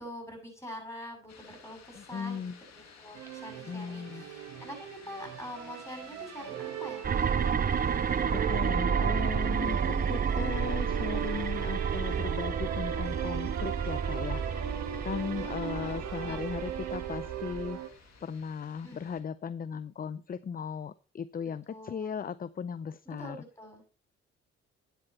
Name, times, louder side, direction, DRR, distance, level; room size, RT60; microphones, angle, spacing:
voice 1, 0.0-7.3 15.3-16.7 18.8-19.1 21.7-22.3 23.1-23.8, equal, 10° left, 4 dB, 6.9 m, -45 dB
sound 1, 1.3-19.2, left 6 dB, 65° left, 2.2 m, -57 dB
voice 2, 2.0-2.6 3.7-4.2 8.3-17.8 18.2-23.4, left 7 dB, 30° left, 17 dB, 0.5 m, -37 dB
sound 2, 3.1-17.9, right 10 dB, 70° right, 1.2 m, -38 dB
sound 3, 7.0-17.8, right 6 dB, 30° right, 0.6 m, -31 dB
9.7 x 8.1 x 4.3 m, 0.36 s
hypercardioid pair, 45°, 29 cm